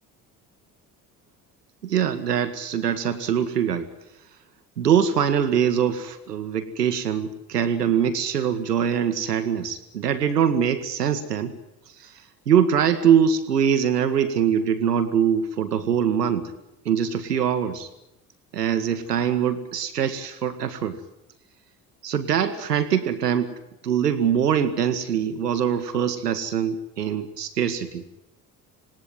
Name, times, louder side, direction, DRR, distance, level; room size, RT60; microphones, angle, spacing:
voice 1, 1.8-3.9 4.8-11.5 12.0-12.1 12.4-16.5 16.8-17.9 18.5-21.0 22.0-23.5 23.8-28.0, right 8 dB, 80° right, 11 dB, 1.7 m, -23 dB
27.0 x 19.0 x 9.3 m, 0.90 s
figure-of-eight pair, 55°, 47 cm